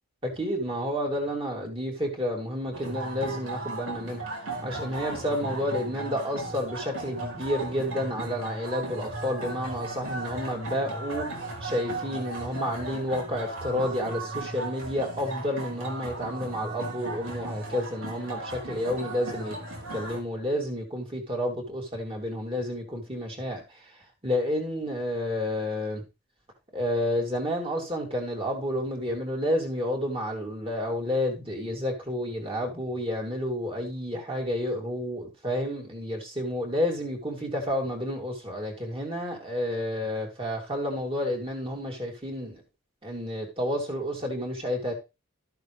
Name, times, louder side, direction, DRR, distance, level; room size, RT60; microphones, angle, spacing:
voice 1, 0.2-4.2 4.6-11.3 11.6-19.6 19.9-23.8 24.2-26.0 26.7-42.6 43.0-44.9, left 1 dB, 25° right, 3.2 m, -30 dB
sound 1, 2.7-20.2, right 2 dB, 65° right, 3.5 m, -36 dB
13.0 x 7.7 x 3.5 m
head